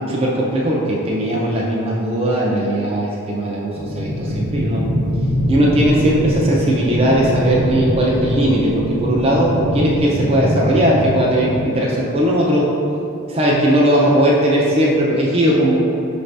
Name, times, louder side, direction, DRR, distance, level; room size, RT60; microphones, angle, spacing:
voice 1, 0.1-4.8 5.5-12.7 13.3-15.8, right 1 dB, 25° right, -4 dB, 0.4 m, -18 dB
sound 1, 3.8-11.8, equal, 80° right, 0.7 m, -22 dB
5.9 x 2.6 x 3.3 m, 2.8 s
head